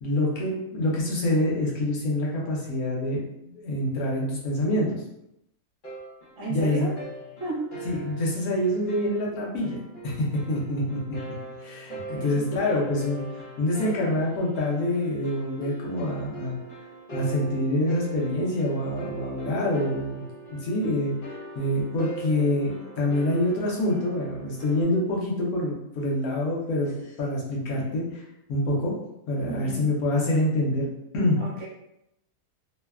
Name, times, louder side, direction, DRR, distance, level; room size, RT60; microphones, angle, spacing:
voice 1, 0.0-4.9 6.5-6.9 7.8-9.8 10.0-11.0 11.6-16.6 17.1-20.2 20.5-21.1 21.5-28.2 28.5-28.9 29.3-30.9 31.1-31.4, left 1 dB, 75° left, -3 dB, 1.2 m, -26 dB
sound 1, 5.8-24.8, right 3 dB, 40° left, 0.8 m, -41 dB
voice 2, 6.4-6.9 7.4-7.7 11.9-12.5 29.5-29.8 31.4-31.7, right 3 dB, 55° right, -5 dB, 1.1 m, -34 dB
3.1 x 2.1 x 2.3 m, 0.82 s
omnidirectional pair, 1.6 m